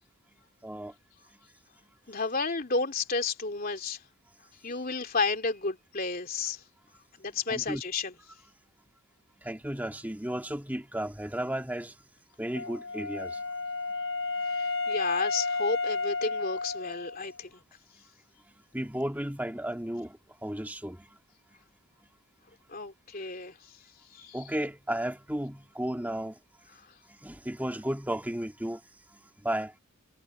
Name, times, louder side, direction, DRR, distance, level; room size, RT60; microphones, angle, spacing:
voice 1, 0.6-0.9 7.5-7.8 9.4-12.0 12.4-13.4 18.7-21.2 24.3-26.4 27.1-28.8 29.1-29.7, right 1 dB, 10° right, 1.9 m, -34 dB
voice 2, 2.1-4.0 4.6-6.6 7.2-8.1 14.5-17.6 22.7-23.6 24.1-24.4, left 4 dB, 45° left, 3.0 m, -32 dB
Wind instrument woodwind instrument, 12.6-17.3, left 3 dB, 70° left, 3.2 m, -32 dB
head